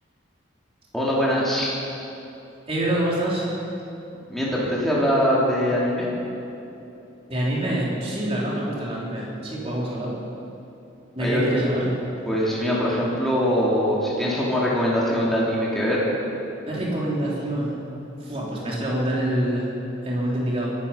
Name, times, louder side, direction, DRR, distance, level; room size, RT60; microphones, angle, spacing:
voice 1, 0.9-1.7 4.3-6.1 11.2-11.6 12.3-16.0, equal, ahead, -7 dB, 2.8 m, -22 dB
voice 2, 2.7-3.5 7.3-10.2 11.1-11.9 16.7-17.7 18.2-19.7 20.0-20.8, right 1 dB, 30° right, -5 dB, 3.4 m, -26 dB
20.5 x 12.0 x 5.6 m, 2.8 s
head